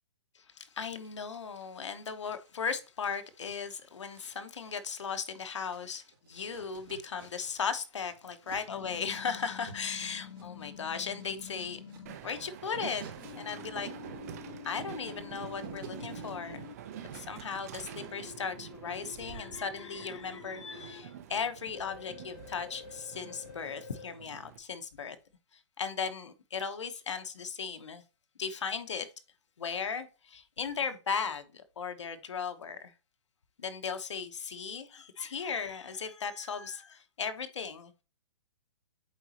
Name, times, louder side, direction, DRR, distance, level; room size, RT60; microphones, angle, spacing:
voice 1, 0.3-11.8 12.2-13.9 14.6-16.6 17.0-25.2 25.8-28.0 28.4-29.1 29.6-32.9 33.6-37.9, left 6 dB, 90° left, 1.0 m, -37 dB
sound 1, 1.0-1.8 2.2-7.7 7.9-17.5, right 5 dB, 50° right, 2.7 m, -55 dB
sound 2, 8.7-12.2 13.2-16.7 17.9-21.0 21.7-24.1, left 7 dB, 60° left, 1.2 m, -48 dB
Train, 12.1-24.6, right 10 dB, 35° right, 0.6 m, -47 dB
8.1 x 4.1 x 2.9 m
hypercardioid pair, 165°, 15 cm